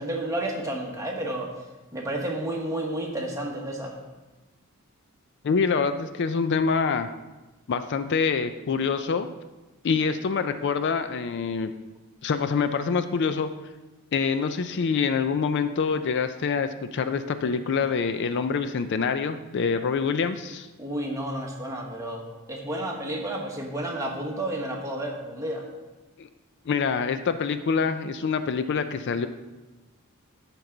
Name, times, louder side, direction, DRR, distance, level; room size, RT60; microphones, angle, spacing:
voice 1, 0.0-1.5 1.9-3.9 20.8-25.7, right 1 dB, 15° right, -1 dB, 1.2 m, -31 dB
voice 2, 5.4-7.1 7.7-9.3 9.8-11.7 12.2-13.5 14.1-20.7 26.2-26.3 26.7-29.3, left 5 dB, 55° left, 10 dB, 0.4 m, -25 dB
13.0 x 4.6 x 3.8 m, 1.1 s
head